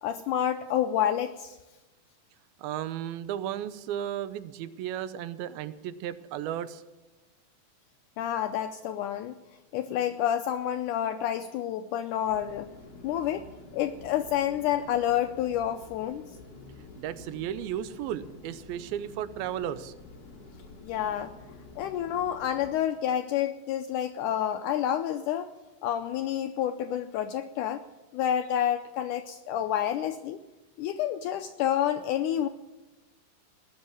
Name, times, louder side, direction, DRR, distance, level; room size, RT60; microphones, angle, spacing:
voice 1, 0.0-1.6 8.2-9.3 9.7-12.7 13.0-13.5 13.7-16.3 20.8-21.3 21.8-25.5 25.8-27.8 28.1-30.4 30.8-32.5, left 10 dB, 80° left, 8 dB, 1.8 m, -29 dB
voice 2, 2.6-6.8 17.0-19.9, right 10 dB, 85° right, 13 dB, 2.6 m, -34 dB
sound 1, 12.2-22.7, left 3 dB, 40° left, 4.2 m, -49 dB
19.0 x 6.4 x 9.3 m, 1.1 s
omnidirectional pair, 4.2 m